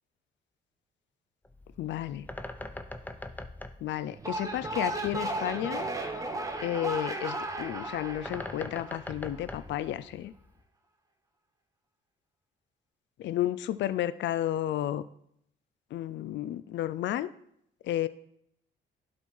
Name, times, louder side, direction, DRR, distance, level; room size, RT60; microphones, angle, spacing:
Bird, 1.4-10.6, left 1 dB, 10° left, 0.6 m, -44 dB
voice 1, 1.8-2.3 3.8-5.8 6.6-10.3 13.2-15.0 15.9-17.3 17.8-18.1, left 12 dB, 65° left, 15 dB, 0.4 m, -32 dB
sound 1, 4.1-9.4, right 2 dB, 15° right, 1.2 m, -35 dB
11.0 x 4.3 x 4.7 m, 0.72 s
cardioid pair, 90°, 20 cm